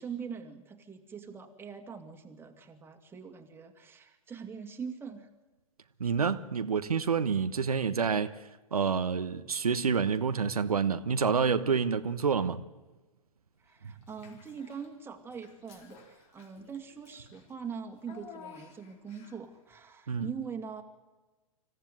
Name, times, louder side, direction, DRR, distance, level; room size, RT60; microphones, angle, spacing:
voice 1, 0.0-5.3 13.6-20.8, right 6 dB, 10° right, 2.5 m, -42 dB
voice 2, 6.0-8.4 8.7-12.6 20.1-20.3, right 6 dB, 80° right, 1.2 m, -28 dB
Child speech kid speaking / Bathtub (filling or washing), 14.0-14.9 15.3-19.5, left 6 dB, 35° left, 4.3 m, -53 dB
26.0 x 15.5 x 9.3 m
figure-of-eight pair, 110°, 19 cm